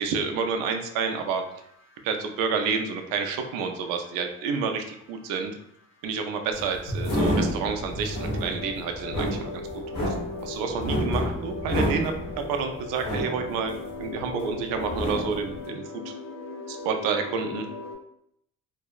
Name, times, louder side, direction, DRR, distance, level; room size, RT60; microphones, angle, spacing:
voice 1, 0.0-1.4 2.0-5.6 6.0-9.8 10.4-12.1 12.5-16.0 16.7-17.7, right 5 dB, 80° right, 5 dB, 0.5 m, -29 dB
sound 1, 0.7-17.9, left 3 dB, 40° left, 0.7 m, -40 dB
sound 2, 6.5-14.4 14.7-15.6, equal, 85° left, 0.9 m, -29 dB
2.6 x 2.0 x 2.3 m, 0.74 s
supercardioid pair, 70°, 33 cm